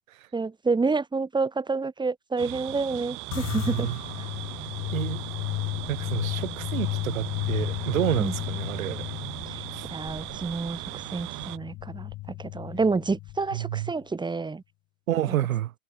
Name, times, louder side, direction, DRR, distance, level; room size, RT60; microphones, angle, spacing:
voice 1, 0.3-3.9 8.2-8.3 9.9-12.1 12.4-14.6 15.3-15.4, right 4 dB, 10° right, 3.5 m, -28 dB
sound 1, 2.4-11.6, right 23 dB, 50° right, 3.8 m, -38 dB
sound 2, 3.3-13.9, left 19 dB, 40° left, 1.5 m, -34 dB
voice 2, 3.3-4.0 4.9-5.2 5.9-9.1 9.7-9.9 13.5-13.9 15.1-15.7, right 13 dB, 90° right, 6.1 m, -29 dB
supercardioid pair, 130°, 40 cm